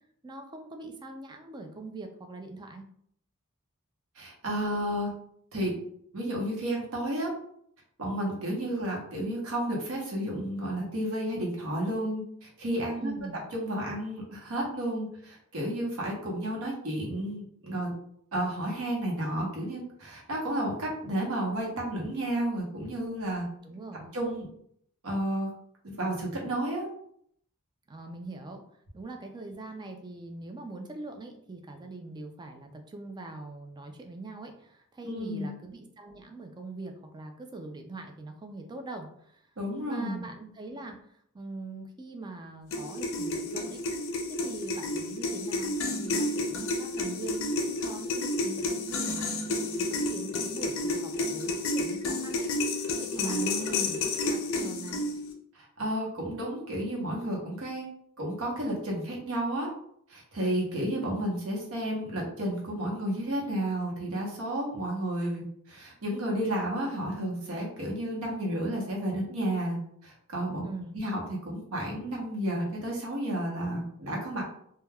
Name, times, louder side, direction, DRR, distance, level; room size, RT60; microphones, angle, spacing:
voice 1, 0.2-2.9 13.0-13.4 23.6-24.1 27.9-28.6 28.9-39.5 39.8-43.8 44.4-52.5 53.0-55.0 70.6-71.0, right 2 dB, 20° right, 5 dB, 0.3 m, -42 dB
voice 2, 4.2-5.1 5.5-5.7 6.1-7.3 8.0-13.1 13.5-17.9 18.3-23.5 24.1-24.5 25.0-25.5 25.8-26.9 35.0-35.5 39.6-40.3 53.2-53.9 55.5-57.9 58.2-59.7 60.1-70.7 70.9-74.4, right 1 dB, 70° right, -1 dB, 0.8 m, -32 dB
sound 1, 42.7-55.3, left 2 dB, 65° left, 0.5 m, -31 dB
3.3 x 2.2 x 2.2 m, 0.68 s
head